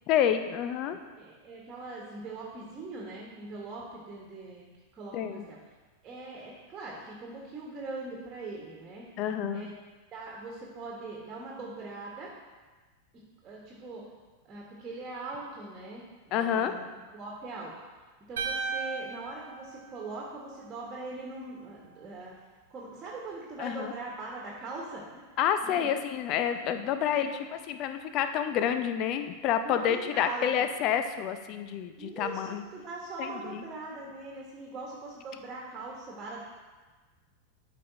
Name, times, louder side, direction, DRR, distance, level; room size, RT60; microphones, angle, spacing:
voice 1, 0.1-1.0 5.1-5.5 9.2-9.7 16.3-16.7 23.6-23.9 25.4-32.6 33.2-33.6, left 9 dB, 40° left, 9 dB, 0.5 m, -29 dB
voice 2, 1.2-4.7 4.9-5.6 6.0-9.1 9.5-9.7 10.1-12.3 13.4-14.0 14.5-16.9 17.1-17.7 18.3-22.3 22.7-25.2 25.6-25.9 26.5-26.6 27.2-27.4 29.5-30.7 32.0-36.4, right 3 dB, 25° right, -3 dB, 1.6 m, -41 dB
sound 1, 18.4-20.6, right 5 dB, 60° right, 0.8 m, -36 dB
12.5 x 5.3 x 2.8 m, 1.3 s
figure-of-eight pair, 90°, 0 cm